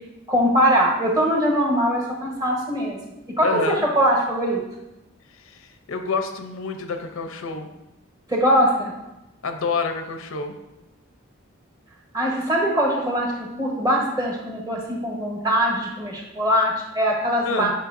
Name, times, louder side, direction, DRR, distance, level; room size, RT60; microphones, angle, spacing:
voice 1, 0.3-3.0 3.4-4.6 8.3-8.9 12.1-17.7, equal, 20° right, -2 dB, 1.1 m, -21 dB
voice 2, 3.4-3.9 5.4-7.7 9.4-10.5 17.5-17.7, left 4 dB, 85° left, 6 dB, 0.6 m, -28 dB
7.4 x 4.9 x 2.6 m, 0.95 s
head